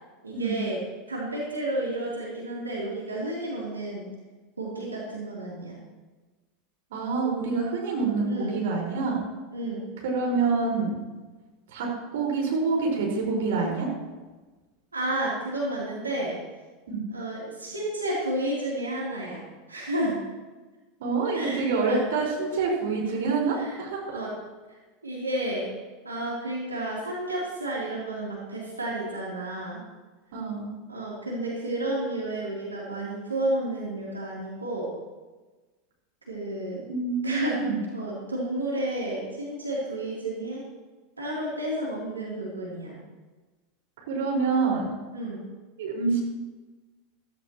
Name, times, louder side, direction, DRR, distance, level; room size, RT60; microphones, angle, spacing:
voice 1, 0.2-0.8 1.1-4.1 4.6-5.8 8.2-8.5 9.5-9.8 14.9-16.3 17.1-19.4 19.7-20.2 21.3-22.0 23.5-23.8 24.1-24.3 25.0-25.7 26.0-29.8 30.9-34.9 36.3-36.8 37.2-37.6 37.9-40.6 41.2-43.0 45.1-45.4, right 1 dB, 85° right, -5 dB, 3.3 m, -31 dB
voice 2, 6.9-9.2 10.0-10.9 11.7-13.9 16.9-17.1 21.0-24.1 30.3-30.7 36.9-37.8 44.1-44.9 45.8-46.2, right 4 dB, 65° right, -2 dB, 4.9 m, -26 dB
15.5 x 14.5 x 3.0 m, 1.2 s
figure-of-eight pair, 85°, 0 cm